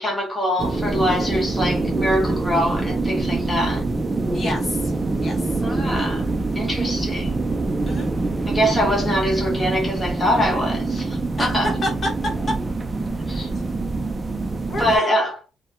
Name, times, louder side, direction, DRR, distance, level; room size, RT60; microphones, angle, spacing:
voice 1, 0.0-3.9 5.6-6.3 6.5-7.3 8.5-11.7 13.3-13.5 14.8-15.4, equal, 15° left, 0.7 m, -23 dB
sound 1, 0.6-15.0, right 3 dB, 25° right, 0.4 m, -25 dB
voice 2, 4.3-4.9 5.2-6.1 7.9-8.1 11.4-11.5 11.8-12.1 14.7-15.2, left 1 dB, 45° left, 1.1 m, -30 dB
2.7 x 2.1 x 2.4 m
cardioid pair, 90°, 0 cm